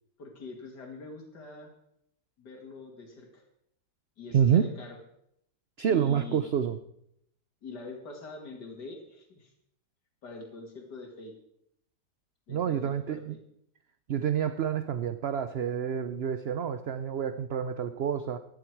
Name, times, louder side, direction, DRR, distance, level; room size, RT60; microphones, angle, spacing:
voice 1, 0.2-1.7 2.4-3.4 4.2-5.0 5.9-6.4 7.6-9.5 10.2-11.3 12.5-13.4, left 3 dB, 85° left, 2 dB, 2.7 m, -44 dB
voice 2, 4.3-4.6 5.8-6.8 12.5-13.3 14.1-18.4, right 8 dB, 55° right, 11 dB, 0.7 m, -28 dB
16.0 x 12.0 x 4.7 m, 0.73 s
omnidirectional pair, 1.8 m